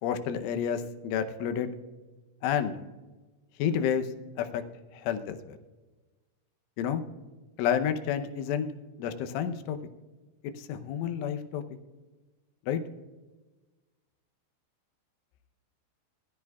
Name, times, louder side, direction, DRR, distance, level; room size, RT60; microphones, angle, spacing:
voice 1, 0.0-1.7 2.4-2.8 3.6-4.1 4.4-4.6 4.9-5.6 6.8-7.0 7.6-8.7 9.0-9.8 10.6-11.6 12.7-12.8, left 8 dB, 85° left, 8 dB, 3.3 m, -30 dB
21.5 x 13.5 x 2.3 m, 1.2 s
omnidirectional pair, 5.6 m